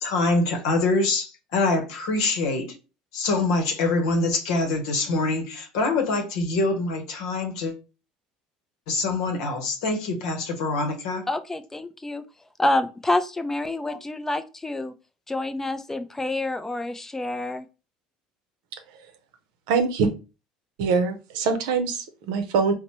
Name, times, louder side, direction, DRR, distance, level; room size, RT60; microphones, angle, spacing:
voice 1, 0.0-2.8 3.1-7.7 8.9-11.3 13.9-14.0, left 3 dB, 80° left, 0.8 m, -25 dB
voice 2, 11.3-12.2 12.6-14.9 15.3-17.7, left 2 dB, 10° left, 0.4 m, -27 dB
voice 3, 19.7-20.1 20.8-22.7, right 5 dB, 75° right, 0.6 m, -23 dB
4.1 x 2.1 x 2.9 m
hypercardioid pair, 80°, 3 cm